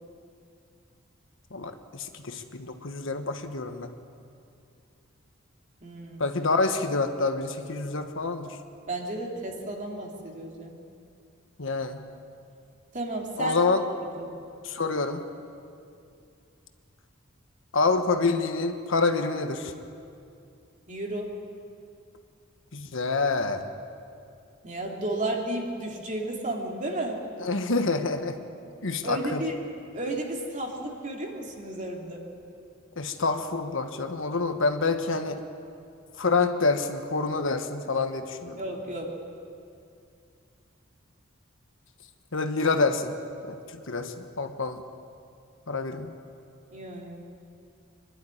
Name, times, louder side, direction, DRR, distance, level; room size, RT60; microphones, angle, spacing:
voice 1, 1.5-3.9 6.2-8.6 11.6-12.0 13.4-13.8 14.6-15.2 17.7-19.7 22.7-23.6 27.4-28.4 28.8-29.4 33.0-35.4 36.2-38.6 42.3-43.1 43.5-44.8 45.7-46.1, left 3 dB, 65° left, 6 dB, 1.3 m, -27 dB
voice 2, 5.8-6.2 8.9-10.8 12.9-13.6 14.2-14.4 20.9-21.3 24.6-27.2 29.0-29.5 29.9-32.2 38.5-39.1 46.7-47.2, right 1 dB, 40° right, 0 dB, 2.9 m, -33 dB
24.5 x 12.0 x 9.8 m, 2.5 s
head